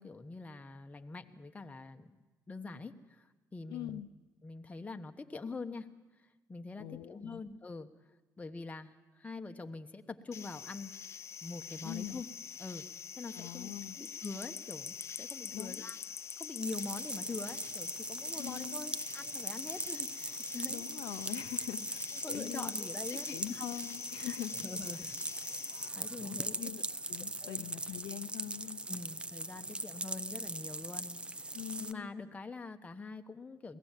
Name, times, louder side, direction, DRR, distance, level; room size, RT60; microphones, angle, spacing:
voice 1, 0.0-2.2 2.5-4.0 4.4-5.9 6.5-7.9 8.4-10.9 11.4-12.3 12.6-12.8 13.2-16.0 16.4-20.8 22.2-23.7 24.2-24.3 24.6-25.1 25.4-26.5 27.4-27.7 28.9-31.5 31.8-33.8, left 3 dB, 20° left, 6 dB, 1.1 m, -44 dB
voice 2, 3.7-4.1 6.8-7.4 11.8-12.2 13.3-14.0 15.5-15.9 18.3-18.9 20.7-22.7 23.1-24.7 25.0-25.1 25.8-26.8 27.1-28.8 31.5-32.1, left 13 dB, 85° left, 11 dB, 0.6 m, -43 dB
sound 1, 10.3-25.9, left 7 dB, 40° left, 0.6 m, -45 dB
sound 2, 16.6-31.9, right 2 dB, 15° right, 0.7 m, -40 dB
22.0 x 17.0 x 7.4 m, 1.2 s
cardioid pair, 90°, 7 cm